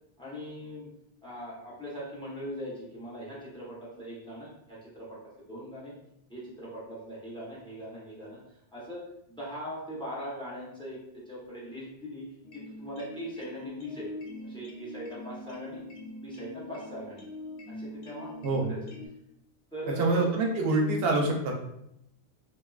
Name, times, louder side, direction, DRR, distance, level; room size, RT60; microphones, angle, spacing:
voice 1, 0.2-0.9 1.2-5.9 6.3-8.4 8.7-11.0 11.3-12.2 12.5-14.1 14.4-15.8 16.2-17.2 17.7-18.3 18.7-18.9 19.7-20.3, equal, 5° left, -7 dB, 0.6 m, -40 dB
sound 1, 12.4-19.1, left 1 dB, 85° left, 0.8 m, -43 dB
voice 2, 20.0-21.6, right 2 dB, 70° right, 1 dB, 0.8 m, -25 dB
2.6 x 2.2 x 2.3 m, 0.80 s
omnidirectional pair, 1.1 m